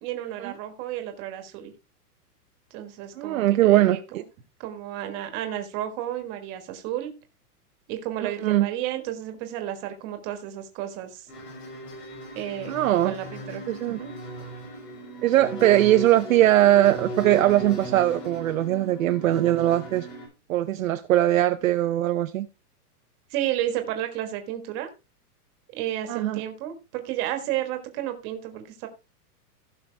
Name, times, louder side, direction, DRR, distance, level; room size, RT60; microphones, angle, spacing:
voice 1, 0.0-1.7 2.7-4.2 4.6-7.1 7.9-11.2 12.3-12.7 13.0-14.1 23.3-24.9 25.8-28.9, right 12 dB, 25° right, 1.4 m, -32 dB
voice 2, 3.2-4.2 8.2-8.7 12.7-13.1 13.7-14.0 15.2-20.1 20.5-22.5 26.1-26.4, right 14 dB, 60° right, 0.7 m, -21 dB
sound 1, 11.3-20.3, equal, 80° left, 5.8 m, -37 dB
16.0 x 5.7 x 3.3 m
supercardioid pair, 170°, 47 cm